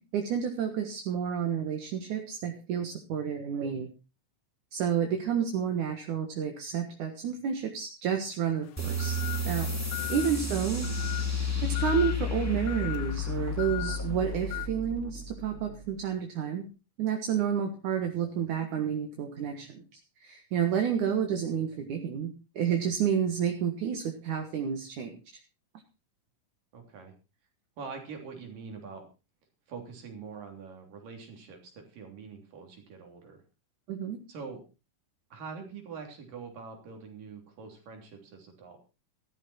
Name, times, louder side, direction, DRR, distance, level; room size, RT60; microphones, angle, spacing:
voice 1, 0.1-3.9 4.7-9.2 9.5-9.7 10.1-10.9 11.6-16.7 17.0-19.8 20.2-25.1 33.9-34.2, right 8 dB, 70° right, 4 dB, 3.0 m, -30 dB
sound 1, 8.6-14.7, left 20 dB, 75° left, 2.3 m, -40 dB
Bassic Noise Sweep, 8.8-15.9, left 3 dB, 5° left, 1.4 m, -32 dB
voice 2, 26.7-27.1 27.8-29.1 29.7-33.4 34.3-34.6 35.3-38.8, right 5 dB, 85° right, 3 dB, 4.9 m, -44 dB
14.5 x 13.5 x 4.3 m, 0.32 s
omnidirectional pair, 3.8 m